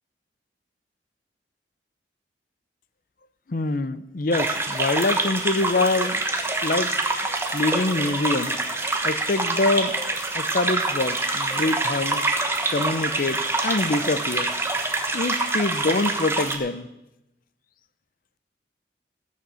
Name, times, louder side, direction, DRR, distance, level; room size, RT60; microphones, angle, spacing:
voice 1, 3.5-6.2 6.6-6.9 7.5-8.6 9.0-10.0 10.3-12.2 12.7-14.5 15.1-16.9, left 2 dB, 50° left, 14 dB, 0.6 m, -25 dB
sound 1, 4.3-16.6, right 2 dB, 15° right, 1.2 m, -26 dB
17.0 x 6.5 x 6.9 m, 0.92 s
head